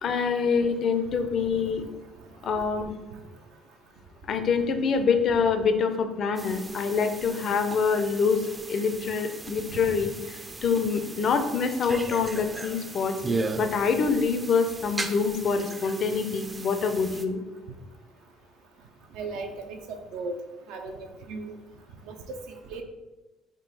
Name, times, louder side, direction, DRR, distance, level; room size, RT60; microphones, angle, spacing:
voice 1, 0.0-1.8 2.4-2.9 4.3-13.1 13.6-17.4, left 5 dB, 55° left, 7 dB, 0.5 m, -25 dB
sound 1, 6.4-17.3, right 3 dB, 25° right, 0.4 m, -37 dB
voice 2, 19.1-19.8 20.1-20.4 20.7-21.5 22.1-22.2 22.7-22.8, right 3 dB, 75° right, 4 dB, 0.5 m, -36 dB
3.7 x 2.4 x 4.1 m, 1.1 s
supercardioid pair, 75°, 0 cm